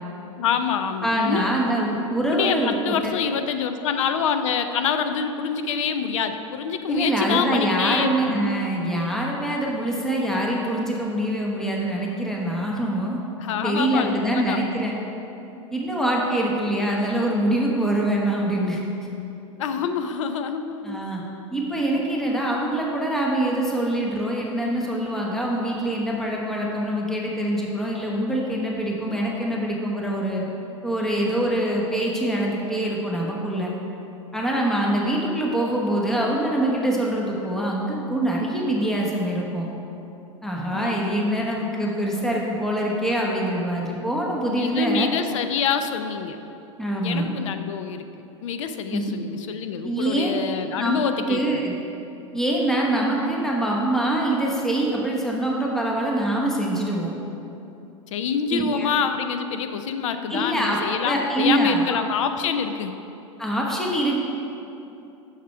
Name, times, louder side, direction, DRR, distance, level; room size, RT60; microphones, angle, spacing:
voice 1, 0.4-1.5 2.3-8.5 13.4-14.6 19.6-21.0 40.6-41.0 44.4-46.4 47.0-48.1 48.4-51.6 58.1-63.0, left 7 dB, 75° left, 9 dB, 0.6 m, -26 dB
voice 2, 1.0-3.1 6.9-13.2 13.6-14.9 15.7-18.8 20.8-21.2 21.5-30.4 30.8-33.7 34.3-39.7 40.4-45.1 46.8-47.3 48.9-49.1 49.8-50.3 50.8-51.7 52.3-57.1 58.5-58.9 60.3-60.8 61.0-61.8 63.4-64.2, right 1 dB, 5° left, -3 dB, 1.1 m, -24 dB
6.6 x 6.5 x 4.5 m, 2.9 s
hypercardioid pair, 105°, 16 cm